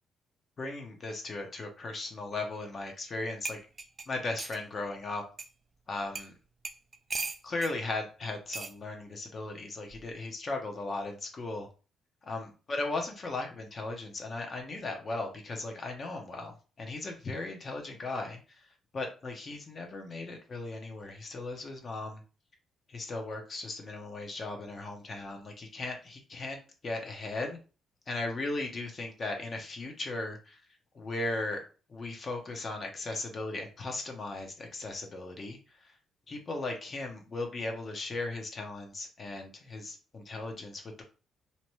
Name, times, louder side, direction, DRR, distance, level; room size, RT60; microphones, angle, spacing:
voice 1, 0.6-3.6 4.1-5.2 5.9-6.3 7.4-11.7 12.2-18.7 18.9-22.2 22.9-27.6 28.1-30.6 30.9-31.6 31.9-35.9 36.3-41.0, left 2 dB, 40° left, 3 dB, 0.8 m, -37 dB
sound 1, 3.1-3.2 3.4-4.6 5.4-5.5 6.1-6.3 6.6-7.7 8.5-8.8 9.9-10.1, right 4 dB, 35° right, 0.3 m, -38 dB
2.8 x 2.2 x 3.0 m, 0.35 s
cardioid pair, 90°, 0 cm